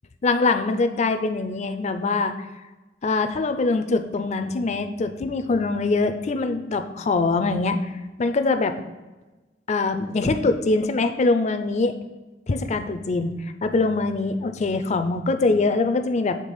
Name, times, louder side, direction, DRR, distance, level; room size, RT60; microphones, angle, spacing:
voice 1, 0.2-2.3 3.0-7.8 8.2-8.8 9.7-11.9 12.5-13.3 13.6-16.4, left 3 dB, 35° left, 8 dB, 0.4 m, -23 dB
6.7 x 3.3 x 5.4 m, 1.2 s
head